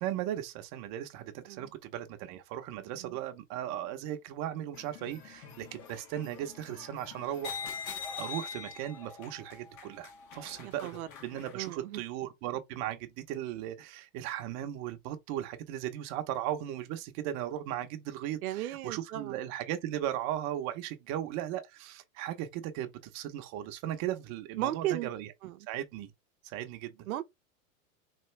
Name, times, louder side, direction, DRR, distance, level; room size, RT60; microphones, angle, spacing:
voice 1, 0.0-7.6 8.2-10.9 11.2-25.3 25.7-26.1 26.4-27.1, right 12 dB, 40° right, 0.9 m, -37 dB
sound 1, 4.7-11.7, left 6 dB, 45° left, 1.6 m, -44 dB
voice 2, 10.6-11.1 11.5-12.0 18.4-19.4 24.6-25.1 25.4-25.6 27.1-27.2, right 13 dB, 90° right, 0.7 m, -35 dB
3.7 x 3.3 x 3.2 m
supercardioid pair, 140°, 42 cm